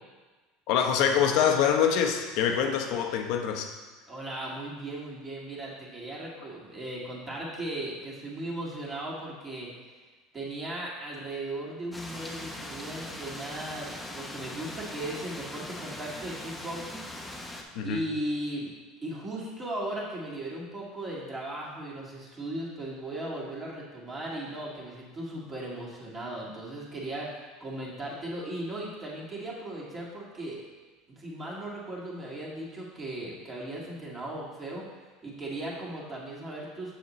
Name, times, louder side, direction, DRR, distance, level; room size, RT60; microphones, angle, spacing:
voice 1, 0.7-3.7 17.7-18.0, left 8 dB, 65° left, 4 dB, 0.8 m, -25 dB
voice 2, 4.1-9.7 10.3-17.1 17.8-18.7 19.0-30.6 31.1-34.9 35.2-37.0, right 1 dB, 25° right, -5 dB, 2.1 m, -37 dB
sound 1, 11.9-17.6, left 1 dB, 10° left, 0.7 m, -41 dB
7.1 x 6.9 x 3.1 m, 1.3 s
supercardioid pair, 125°, 0 cm